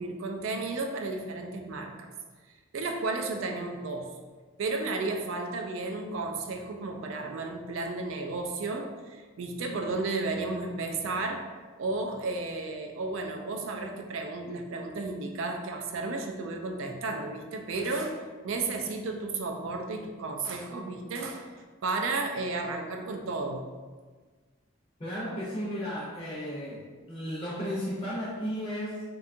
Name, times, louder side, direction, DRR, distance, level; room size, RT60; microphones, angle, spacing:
voice 1, 0.0-2.1 2.7-4.1 4.6-11.5 11.8-21.5 21.8-23.6, right 3 dB, 70° right, 3 dB, 0.3 m, -33 dB
voice 2, 25.0-29.0, equal, 30° left, -9 dB, 0.5 m, -34 dB
2.7 x 2.3 x 2.5 m, 1.4 s
head